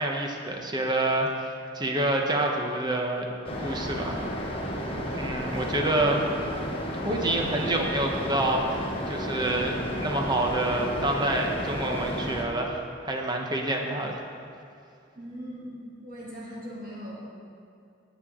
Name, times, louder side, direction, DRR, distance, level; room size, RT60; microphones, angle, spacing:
voice 1, 0.0-3.3 3.6-4.3 5.1-6.2 7.0-12.8 13.0-14.2, right 1 dB, 25° right, 1 dB, 1.0 m, -27 dB
sound 1, 3.4-12.4, equal, 30° left, 1.2 m, -32 dB
voice 2, 15.1-17.3, equal, 50° right, -6 dB, 2.7 m, -40 dB
17.5 x 6.7 x 3.8 m, 2.5 s
head